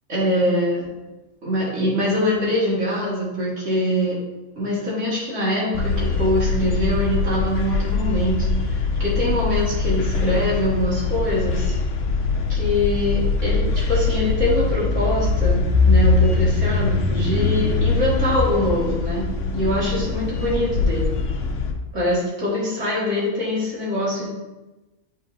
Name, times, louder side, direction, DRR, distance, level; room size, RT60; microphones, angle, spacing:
voice 1, 0.1-0.9 1.4-4.2 4.6-11.8 12.5-21.1 21.9-24.3, left 1 dB, 90° right, -7 dB, 2.4 m, -23 dB
sound 1, 5.7-21.7, left 3 dB, 85° left, 1.0 m, -22 dB
9.3 x 4.1 x 2.7 m, 1.1 s
omnidirectional pair, 1.2 m